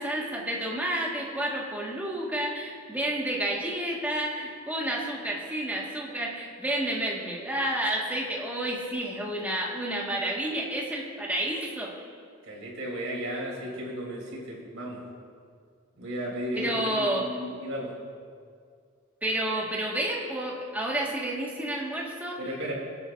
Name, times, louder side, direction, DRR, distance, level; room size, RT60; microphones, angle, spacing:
voice 1, 0.0-11.9 16.5-17.3 19.2-22.5, right 1 dB, 10° right, -3 dB, 1.7 m, -30 dB
voice 2, 12.5-15.0 16.0-17.9 22.4-22.7, equal, 80° right, -3 dB, 3.4 m, -34 dB
25.0 x 8.6 x 2.6 m, 2.1 s
head